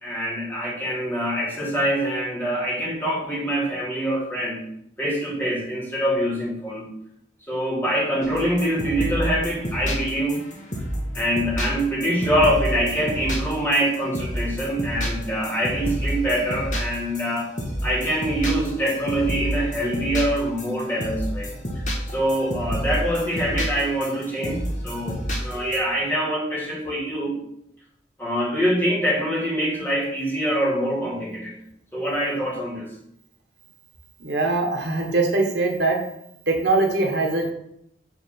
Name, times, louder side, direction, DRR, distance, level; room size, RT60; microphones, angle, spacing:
voice 1, 0.0-4.7 5.0-6.9 7.5-10.4 11.1-17.5 17.8-27.4 28.2-31.6 31.9-32.9, equal, 10° left, -5 dB, 2.5 m, -25 dB
sound 1, 8.2-25.8, equal, 45° left, 1.5 m, -29 dB
voice 2, 34.2-36.0 36.5-37.5, right 3 dB, 80° right, 2 dB, 1.5 m, -22 dB
8.1 x 3.8 x 5.9 m, 0.74 s
head